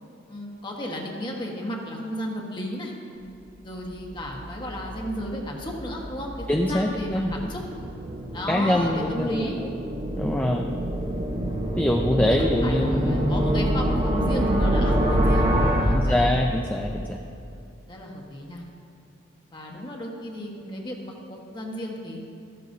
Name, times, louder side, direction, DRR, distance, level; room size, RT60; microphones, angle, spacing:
voice 1, 0.3-2.9 3.6-7.6 8.3-9.6 12.2-15.5 15.8-16.4 17.9-18.6 19.5-22.2, equal, 25° left, -1 dB, 1.4 m, -33 dB
sound 1, 3.9-16.9, right 1 dB, 30° right, 1.0 m, -26 dB
voice 2, 6.5-7.5 8.5-9.5 10.2-10.7 11.8-13.3 15.9-17.2, left 1 dB, 10° left, 1 dB, 0.4 m, -24 dB
13.5 x 13.0 x 2.7 m, 2.6 s
head